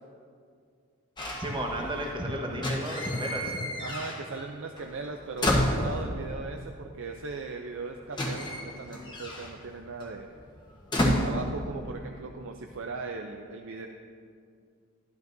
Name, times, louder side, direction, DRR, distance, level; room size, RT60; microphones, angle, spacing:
sound 1, 1.2-2.2 2.5-4.5 4.8-6.4 7.4-7.5 7.6-12.1 12.4-12.9, left 1 dB, 20° left, 1.2 m, -31 dB
voice 1, 1.4-3.6, equal, 20° right, -1 dB, 1.3 m, -32 dB
voice 2, 3.8-10.3 11.0-13.9, right 3 dB, 60° right, 4 dB, 0.5 m, -38 dB
13.0 x 12.0 x 2.7 m, 2.2 s
head